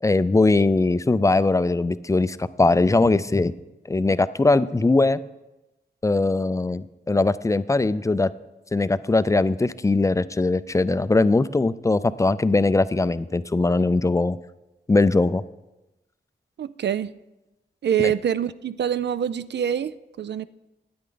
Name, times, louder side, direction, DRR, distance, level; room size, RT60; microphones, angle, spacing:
voice 1, 0.0-3.5 3.9-5.2 6.0-8.3 8.7-14.4 14.9-15.4 18.0-18.1, left 3 dB, 15° left, 15 dB, 0.3 m, -20 dB
voice 2, 16.6-17.1 17.8-20.5, right 9 dB, 70° right, 15 dB, 0.4 m, -25 dB
12.5 x 9.5 x 3.9 m, 0.98 s
wide cardioid pair, 105°, 18 cm